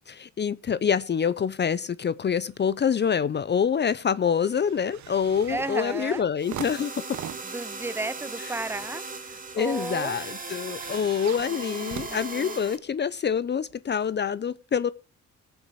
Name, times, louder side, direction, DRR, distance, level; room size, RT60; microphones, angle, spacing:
voice 1, 0.0-6.9 9.5-14.9, left 7 dB, 35° left, 0.6 m, -26 dB
sound 1, 2.5-3.2 3.5-12.9 13.7-13.8, right 12 dB, 70° right, 0.9 m, -44 dB
voice 2, 5.5-6.2 7.4-10.2, right 2 dB, 10° right, 0.6 m, -33 dB
sound 2, 6.4-12.8, right 3 dB, 25° right, 2.4 m, -38 dB
18.5 x 7.1 x 4.8 m
cardioid pair, 90°, 30 cm